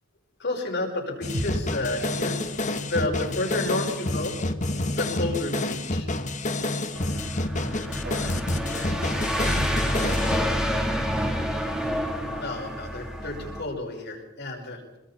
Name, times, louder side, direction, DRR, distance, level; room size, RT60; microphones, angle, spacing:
voice 1, 0.4-2.4 2.8-4.4 4.9-6.1 12.3-14.8, left 2 dB, 60° left, 0 dB, 5.4 m, -31 dB
sound 1, 1.2-10.4, left 2 dB, 40° left, 1.4 m, -29 dB
sound 2, 1.3-5.3 5.6-5.7, equal, 80° right, 5.6 m, -39 dB
sound 3, 6.9-13.6, equal, 5° right, 3.5 m, -28 dB
voice 2, 8.0-8.8 9.1-10.8, right 2 dB, 50° right, 0 dB, 7.4 m, -43 dB
26.5 x 23.0 x 4.4 m, 1.0 s
head